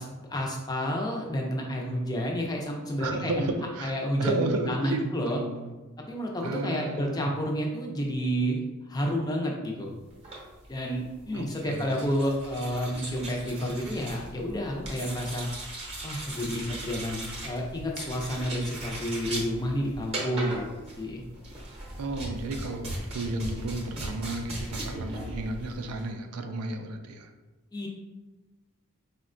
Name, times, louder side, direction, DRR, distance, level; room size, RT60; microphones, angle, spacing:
voice 1, 0.0-3.5 3.8-5.4 6.0-8.6 8.9-9.9 10.7-15.5 16.0-20.7 21.0-21.2 27.7-27.9, equal, 20° left, 0 dB, 0.4 m, -30 dB
voice 2, 3.0-5.7 6.4-7.3 11.3-12.0 22.0-27.3, right 2 dB, 90° right, 6 dB, 0.4 m, -33 dB
sound 1, 10.1-26.1, right 1 dB, 30° right, 0.7 m, -38 dB
4.2 x 2.1 x 2.5 m, 1.2 s
head